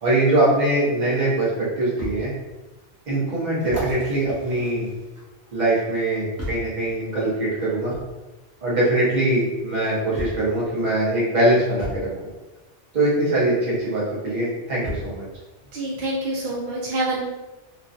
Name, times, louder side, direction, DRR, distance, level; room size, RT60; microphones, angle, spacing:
voice 1, 0.0-2.3 3.1-4.9 5.5-7.9 8.6-12.1 12.9-15.2, right 1 dB, 40° right, -8 dB, 1.2 m, -22 dB
sound 1, 2.0-2.2 2.8-2.9 3.6-5.5 6.4-6.7 7.9-8.1 9.3-9.4 10.1-10.5 11.8-12.0 13.7-13.8 14.8-15.2 16.0-16.1, equal, 15° right, 0.7 m, -34 dB
voice 2, 15.7-17.2, right 1 dB, 55° right, -5 dB, 0.6 m, -26 dB
3.1 x 2.2 x 2.5 m, 1.1 s
omnidirectional pair, 1.2 m